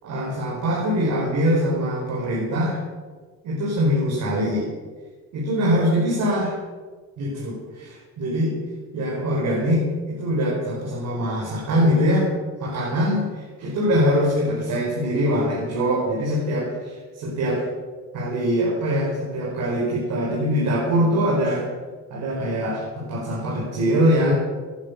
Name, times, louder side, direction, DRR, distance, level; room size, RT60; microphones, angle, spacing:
voice 1, 0.0-2.8 3.4-4.7 5.3-6.6 7.2-8.6 8.9-12.3 12.6-17.6 18.1-21.7 22.1-24.3, equal, 80° right, -4 dB, 4.9 m, -23 dB
17.5 x 11.0 x 6.6 m, 1.5 s
cardioid pair, 90°, 30 cm